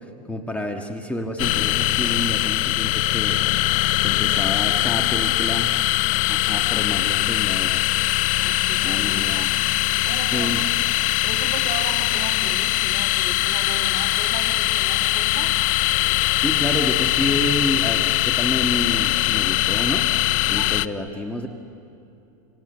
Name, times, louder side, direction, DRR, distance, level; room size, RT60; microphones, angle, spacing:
voice 1, 0.3-3.4 4.0-5.7 6.3-7.8 8.8-9.5 10.3-10.6 16.4-20.1 20.5-21.5, left 1 dB, 5° left, 3 dB, 1.6 m, -28 dB
sound 1, 1.4-20.9, left 18 dB, 65° left, 0.7 m, -21 dB
voice 2, 8.4-9.7 10.0-10.6 10.9-11.0 11.2-15.5 20.5-20.7, right 6 dB, 40° right, 1 dB, 3.1 m, -36 dB
27.0 x 25.0 x 8.0 m, 2.7 s
supercardioid pair, 120°, 19 cm